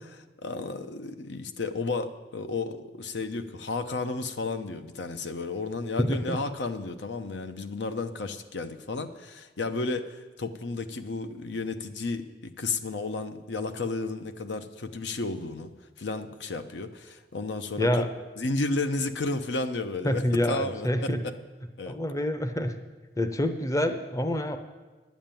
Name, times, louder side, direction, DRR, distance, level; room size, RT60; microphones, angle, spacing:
voice 1, 0.4-15.7 16.0-18.0 18.4-21.3 21.8-22.0, left 3 dB, 75° left, 9 dB, 0.7 m, -32 dB
voice 2, 6.0-6.4 17.8-18.1 20.0-21.2 21.8-22.7 23.2-24.6, left 1 dB, 20° left, 8 dB, 0.6 m, -27 dB
10.5 x 7.3 x 8.9 m, 1.2 s
head